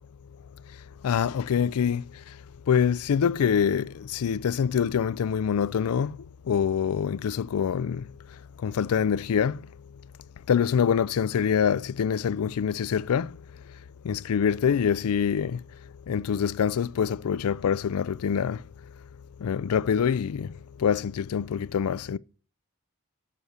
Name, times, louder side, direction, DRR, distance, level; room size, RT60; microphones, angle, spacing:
voice 1, 1.0-2.0 2.7-6.2 6.5-8.0 8.6-9.6 10.5-13.3 14.0-15.6 16.1-18.6 19.4-20.5 20.8-22.2, left 7 dB, 80° left, 0.4 m, -25 dB
8.3 x 6.4 x 7.9 m
head